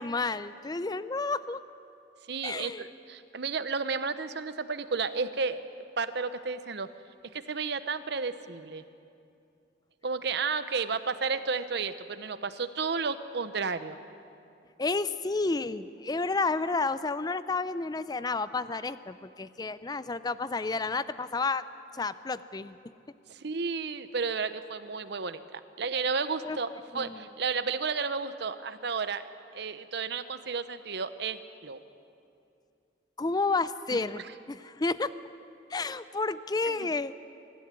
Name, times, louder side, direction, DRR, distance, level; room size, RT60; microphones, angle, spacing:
voice 1, 0.0-1.6 2.4-2.9 14.8-21.6 21.9-22.8 26.4-26.6 26.9-27.2 33.2-34.2 34.5-35.1 35.7-37.1, left 3 dB, 20° left, 14 dB, 0.5 m, -31 dB
voice 2, 2.3-5.6 6.0-6.9 7.3-8.8 10.0-14.0 23.3-29.3 29.5-31.8 33.9-34.0 36.7-36.9, right 5 dB, 65° right, 12 dB, 0.9 m, -32 dB
24.0 x 12.5 x 9.7 m, 2.6 s
head